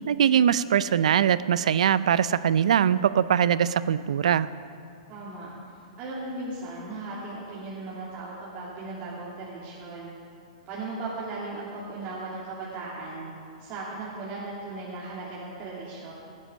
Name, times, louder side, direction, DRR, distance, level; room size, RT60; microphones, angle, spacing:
voice 1, 0.1-4.5, right 9 dB, 75° right, 16 dB, 0.5 m, -22 dB
voice 2, 5.1-5.5 6.0-10.1 10.7-13.3 13.6-16.1, right 2 dB, 35° right, -7 dB, 2.8 m, -37 dB
16.5 x 9.7 x 6.2 m, 2.4 s
hypercardioid pair, 125°, 4 cm